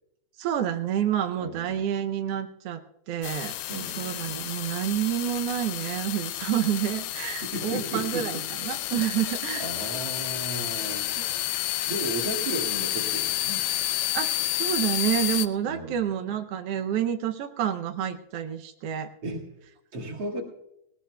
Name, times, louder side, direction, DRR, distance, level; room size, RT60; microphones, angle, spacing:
voice 1, 0.4-9.9 11.2-11.3 14.1-19.1, right 10 dB, 90° right, 6 dB, 1.3 m, -29 dB
voice 2, 1.4-1.8 3.7-4.2 7.4-8.4 9.6-11.1 11.9-13.6 15.6-16.0 19.2-19.6 19.9-20.4, right 2 dB, 40° right, 0 dB, 2.3 m, -35 dB
sound 1, 3.2-15.5, left 14 dB, 90° left, 2.3 m, -30 dB
19.0 x 18.5 x 2.3 m, 0.84 s
omnidirectional pair, 3.6 m